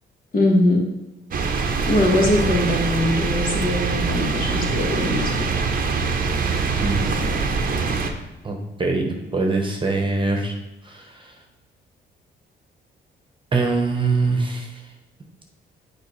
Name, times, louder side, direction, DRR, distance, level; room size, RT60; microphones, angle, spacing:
voice 1, 0.3-0.8 1.9-5.3, left 1 dB, 45° left, -1 dB, 1.7 m, -21 dB
sound 1, 1.3-8.1, right 4 dB, 45° right, 0.8 m, -23 dB
voice 2, 6.8-7.2 8.4-10.5 10.8-11.3 13.5-14.7, right 3 dB, 25° right, 2 dB, 1.1 m, -23 dB
7.1 x 4.9 x 3.2 m, 1.0 s
cardioid pair, 90°, 20 cm